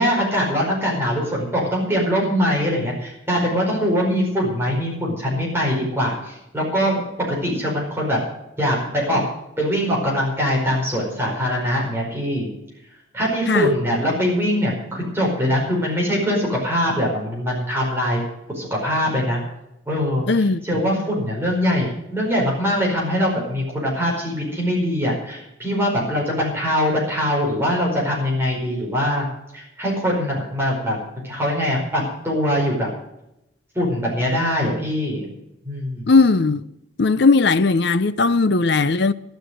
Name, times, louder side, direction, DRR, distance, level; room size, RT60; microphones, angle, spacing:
voice 1, 0.0-7.0 7.3-8.2 8.6-9.2 9.6-12.5 13.1-18.2 18.5-19.4 19.9-20.2 20.6-29.3 29.5-31.0 31.2-32.9 33.7-35.2 35.6-36.1, equal, 10° right, 5.0 m, -22 dB
voice 2, 20.3-20.8 36.1-36.6 37.0-39.1, left 3 dB, 60° left, 0.6 m, -17 dB
12.5 x 11.5 x 6.3 m
head